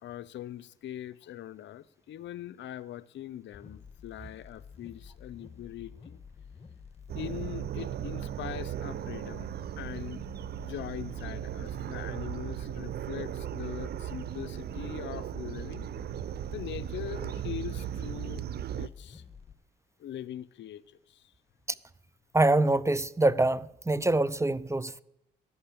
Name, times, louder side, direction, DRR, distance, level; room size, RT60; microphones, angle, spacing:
voice 1, 0.0-6.2 7.1-10.2 10.6-15.9 16.5-18.4 18.8-19.2 20.0-21.3, left 11 dB, 70° left, 0.7 m, -42 dB
sound 1, 3.5-19.5, left 6 dB, 30° left, 1.7 m, -50 dB
sound 2, 7.1-18.9, right 11 dB, 55° right, 0.6 m, -37 dB
voice 2, 22.3-25.0, right 2 dB, 15° right, 0.7 m, -25 dB
14.5 x 11.0 x 8.6 m
supercardioid pair, 60°, 20 cm